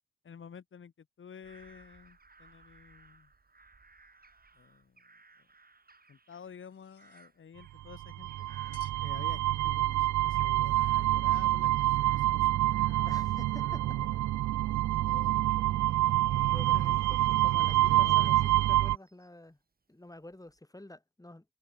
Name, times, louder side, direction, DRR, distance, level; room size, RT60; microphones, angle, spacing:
voice 1, 0.2-3.3 4.5-5.0 5.4-5.5 6.1-8.5 9.0-13.3 13.6-14.2 15.0-16.0 16.6-16.8 17.5-18.5, left 7 dB, 40° left, 1.3 m, -51 dB
Bird vocalization bird call bird song / Crow, 1.4-9.7 10.1-13.2 13.5-19.5 20.0-20.6, right 4 dB, 30° right, 5.7 m, -63 dB
sound 1, 6.6-7.3 8.7-9.1 10.4-11.1, left 10 dB, 75° left, 3.7 m, -60 dB
sound 2, 7.9-19.0, right 15 dB, 70° right, 0.5 m, -27 dB
voice 2, 13.0-14.0 16.1-18.4 18.7-19.6 19.9-21.5, left 1 dB, 10° left, 6.3 m, -49 dB
cardioid pair, 75°, 30 cm